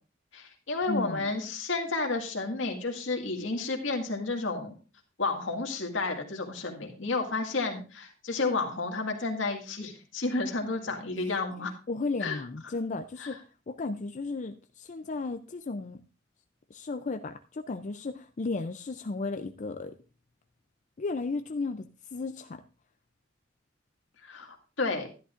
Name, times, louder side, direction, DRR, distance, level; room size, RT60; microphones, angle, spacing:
voice 1, 0.3-4.7 5.2-11.7 12.2-12.4 13.2-13.3 24.2-25.1, left 3 dB, 80° left, 3 dB, 2.0 m, -31 dB
voice 2, 0.9-1.3 11.6-16.0 16.7-19.9 21.0-21.9 22.1-22.6, left 3 dB, 40° left, 7 dB, 0.5 m, -34 dB
12.5 x 11.0 x 2.5 m, 0.34 s
head